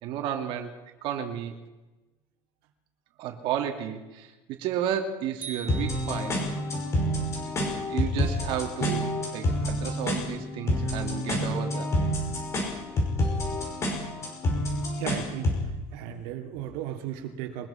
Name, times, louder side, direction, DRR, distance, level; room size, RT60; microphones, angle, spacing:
voice 1, 0.0-0.7 1.0-1.5 3.2-6.4 7.6-11.9, right 9 dB, 50° right, 3 dB, 2.7 m, -32 dB
sound 1, 5.4-6.8, right 6 dB, 15° right, 4.6 m, -42 dB
sound 2, 5.7-15.7, left 1 dB, 25° left, 5.9 m, -28 dB
voice 2, 15.0-15.5 15.9-17.7, right 10 dB, 75° right, 4 dB, 2.7 m, -35 dB
23.0 x 21.0 x 5.8 m, 1.1 s
cardioid pair, 175°, 11 cm